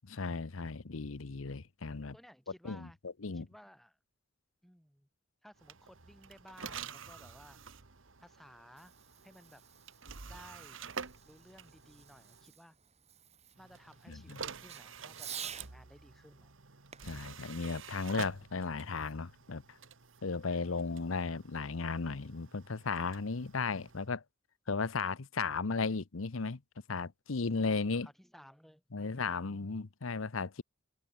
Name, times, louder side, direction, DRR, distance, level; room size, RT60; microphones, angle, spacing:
voice 1, 0.1-2.2 2.6-3.5 14.1-14.4 17.0-19.8 20.2-24.2 24.7-26.6 26.9-28.1 28.9-30.6, left 4 dB, 90° left, 0.9 m, -35 dB
voice 2, 2.1-3.0 3.3-4.0 4.6-5.1 5.4-7.6 8.2-8.9 9.2-9.6 10.2-10.8 11.2-12.7 13.6-16.5 20.5-20.9 27.4-29.7, equal, ahead, 3.3 m, -58 dB
sound 1, 5.6-12.5 13.6-24.1, right 6 dB, 70° right, 1.7 m, -49 dB
Fireworks, 8.6-15.7 16.9-18.5, right 8 dB, 35° right, 4.6 m, -51 dB
head